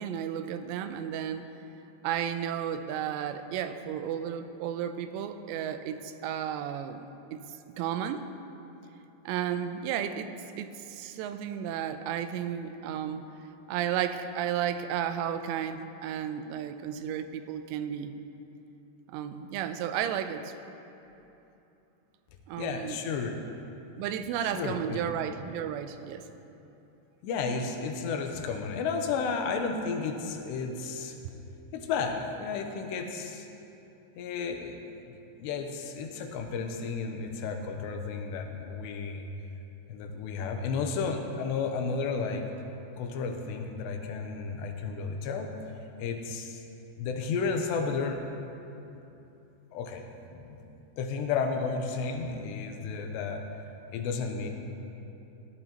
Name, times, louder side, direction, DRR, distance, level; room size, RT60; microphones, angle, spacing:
voice 1, 0.0-1.5 2.0-7.1 7.3-7.4 7.7-8.2 9.3-10.3 10.6-13.3 13.7-18.1 19.1-20.5 22.5-23.0 24.0-26.3, right 9 dB, 90° right, 9 dB, 2.8 m, -33 dB
voice 2, 22.6-23.4 24.4-25.2 27.2-31.2 31.7-33.5 34.2-34.8 35.1-39.3 39.9-42.4 43.0-45.5 46.0-46.6 47.0-48.2 49.7-50.1 50.3-50.6 51.0-53.4 53.9-54.5, left 5 dB, 85° left, 4 dB, 3.0 m, -32 dB
17.0 x 12.0 x 2.9 m, 2.9 s
omnidirectional pair, 4.9 m